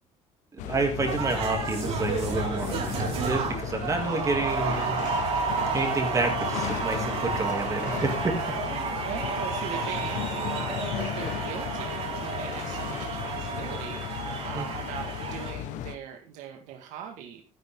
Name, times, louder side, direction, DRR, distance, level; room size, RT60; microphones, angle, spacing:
sound 1, 0.6-16.0, left 11 dB, 80° left, 1.0 m, -35 dB
voice 1, 0.6-5.0 5.7-8.4 14.5-14.7, right 3 dB, 25° right, 4 dB, 2.6 m, -29 dB
sound 2, 1.1-15.5, right 5 dB, 55° right, 3.4 m, -31 dB
voice 2, 9.0-17.4, right 9 dB, 85° right, 3 dB, 1.8 m, -40 dB
12.0 x 10.5 x 3.7 m, 0.34 s
cardioid pair, 135°, 13 cm